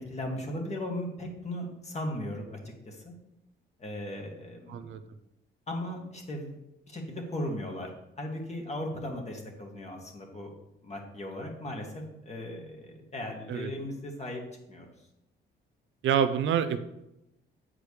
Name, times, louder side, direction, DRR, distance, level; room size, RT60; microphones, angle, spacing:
voice 1, 0.0-2.6 2.9-3.1 3.8-5.0 5.7-6.6 6.9-10.5 10.8-14.4 14.7-14.9, left 1 dB, 35° left, 1 dB, 2.0 m, -37 dB
voice 2, 4.7-5.0 13.5-13.7 16.0-16.8, right 8 dB, 75° right, 10 dB, 0.6 m, -27 dB
8.1 x 4.9 x 4.9 m, 0.88 s
cardioid pair, 90°, 20 cm